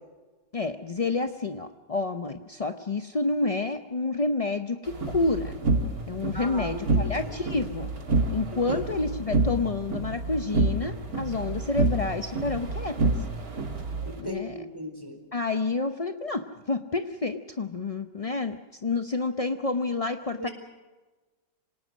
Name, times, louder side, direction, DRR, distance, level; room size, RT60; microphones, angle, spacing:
voice 1, 0.5-5.6 6.1-7.9 8.3-13.1 14.2-14.6 15.3-20.5, left 3 dB, 45° left, 7 dB, 0.4 m, -29 dB
sound 1, 4.9-14.2, right 2 dB, 60° right, 2.8 m, -28 dB
voice 2, 6.3-7.3 8.7-8.8 14.0-15.2 20.4-20.5, equal, 10° right, 4 dB, 4.2 m, -37 dB
26.0 x 19.0 x 6.3 m, 1.2 s
omnidirectional pair, 1.8 m